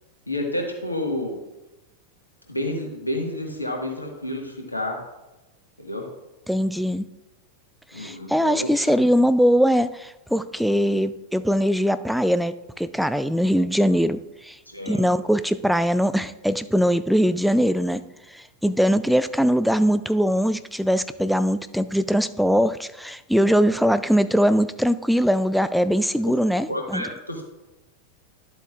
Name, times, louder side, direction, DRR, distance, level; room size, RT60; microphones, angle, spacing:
voice 1, 0.3-1.4 2.5-5.0 5.8-6.1 7.9-9.0 14.7-15.2 26.2-26.3 26.7-27.4, left 1 dB, 85° left, 2 dB, 1.5 m, -30 dB
voice 2, 6.5-7.0 8.0-14.6 14.9-18.0 18.3-27.1, equal, ahead, 12 dB, 0.3 m, -21 dB
11.0 x 7.8 x 2.4 m, 0.99 s
figure-of-eight pair, 90°, 0 cm